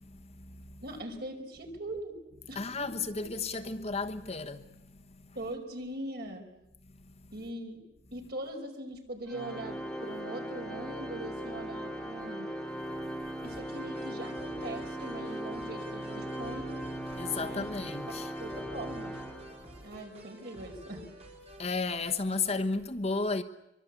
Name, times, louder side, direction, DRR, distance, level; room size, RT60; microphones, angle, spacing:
voice 1, 0.0-0.8 2.5-5.3 6.9-7.3 17.1-18.3 21.6-23.4, left 4 dB, 35° left, 1.2 m, -34 dB
voice 2, 0.8-2.2 2.5-2.6 3.2-3.4 5.3-6.5 7.3-7.8 8.1-12.5 13.4-16.7 17.4-17.7 18.1-19.2 19.8-21.0, right 1 dB, 60° right, 5.1 m, -41 dB
Organ, 9.3-19.9, equal, 5° left, 2.2 m, -39 dB
sound 1, 13.4-21.7, right 1 dB, 35° right, 5.1 m, -51 dB
25.0 x 24.0 x 8.3 m
head